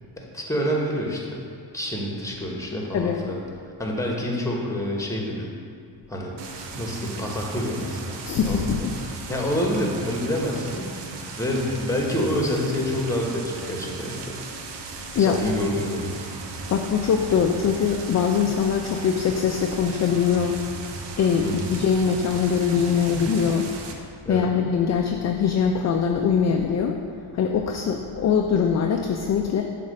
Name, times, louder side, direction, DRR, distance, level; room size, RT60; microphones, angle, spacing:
voice 1, 0.2-1.4 1.7-3.4 3.8-5.5 6.1-6.4 6.7-8.8 9.3-10.8 11.4-14.3 15.2-16.3 21.4-21.7 24.2-24.5, equal, 5° left, -1 dB, 1.2 m, -27 dB
sound 1, 6.4-23.9, right 4 dB, 65° right, 0.8 m, -36 dB
voice 2, 8.2-9.0 15.1-15.4 16.7-20.6 21.2-23.7 24.3-27.0 27.3-29.6, left 7 dB, 40° left, 3 dB, 0.4 m, -22 dB
7.1 x 2.5 x 5.2 m, 2.3 s
cardioid pair, 70°, 45 cm